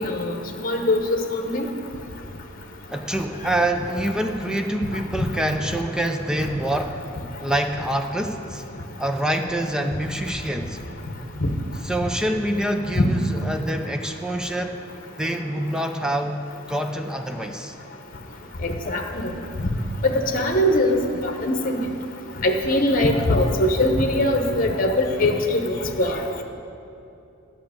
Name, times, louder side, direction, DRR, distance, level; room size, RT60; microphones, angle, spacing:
voice 1, 0.0-1.7 3.4-3.5 11.4-11.5 13.0-13.2 18.6-19.3 19.6-19.7 20.0-21.8 22.4-26.2, left 1 dB, 40° left, 3 dB, 1.0 m, -22 dB
voice 2, 2.9-7.0 7.4-8.6 9.0-10.8 11.8-14.8 15.2-16.4 16.7-17.8, right 1 dB, 5° right, 4 dB, 0.5 m, -26 dB
11.0 x 5.8 x 8.8 m, 2.8 s
head